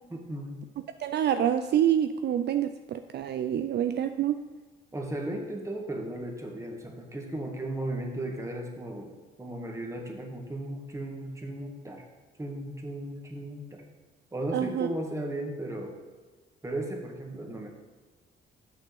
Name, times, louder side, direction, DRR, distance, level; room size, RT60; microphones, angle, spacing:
voice 1, 0.1-0.6 4.9-9.1 9.4-12.0 12.4-13.8 14.3-15.9 16.6-17.7, right 1 dB, 15° right, 1 dB, 1.7 m, -35 dB
voice 2, 1.0-4.4 14.5-14.9, right 10 dB, 60° right, 9 dB, 0.4 m, -27 dB
6.5 x 6.3 x 6.4 m, 1.3 s
cardioid pair, 90°, 20 cm